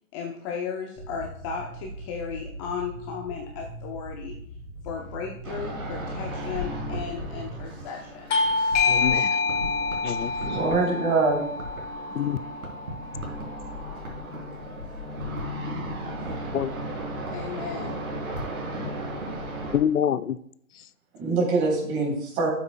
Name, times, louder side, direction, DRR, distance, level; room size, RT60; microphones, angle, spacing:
voice 1, 0.1-4.4 4.8-8.3 17.3-18.0, left 6 dB, 20° left, 0 dB, 0.7 m, -35 dB
sound 1, 1.0-7.7, right 2 dB, ahead, 2.6 m, -40 dB
sound 2, 5.4-19.8, equal, 75° right, 3.5 m, -35 dB
Bell / Doorbell, 8.3-13.5, left 4 dB, 55° left, 0.9 m, -27 dB
voice 2, 8.9-9.4 10.0-10.3 12.1-12.4 16.5-16.7 18.8-18.9 19.7-20.4, left 9 dB, 90° left, 16 dB, 0.6 m, -26 dB
voice 3, 10.2-11.5 13.8-14.1 21.1-22.5, right 3 dB, 30° right, 0 dB, 3.6 m, -25 dB
12.0 x 7.3 x 2.2 m, 0.68 s
hypercardioid pair, 130°, 43 cm